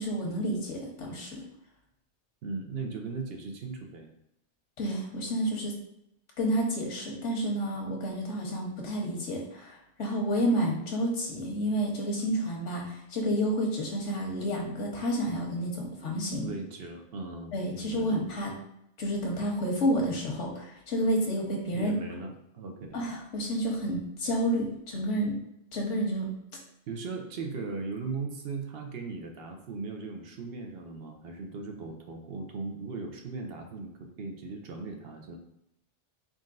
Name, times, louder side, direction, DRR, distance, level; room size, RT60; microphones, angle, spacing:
voice 1, 0.0-1.4 4.8-5.7 6.4-16.5 17.5-18.5 19.0-21.9 22.9-25.3 25.7-26.3, equal, 85° left, -1 dB, 1.3 m, -30 dB
voice 2, 2.4-4.1 16.3-18.1 21.7-23.0 26.9-35.4, right 4 dB, 65° right, 4 dB, 0.8 m, -38 dB
4.1 x 3.8 x 2.5 m, 0.79 s
omnidirectional pair, 1.2 m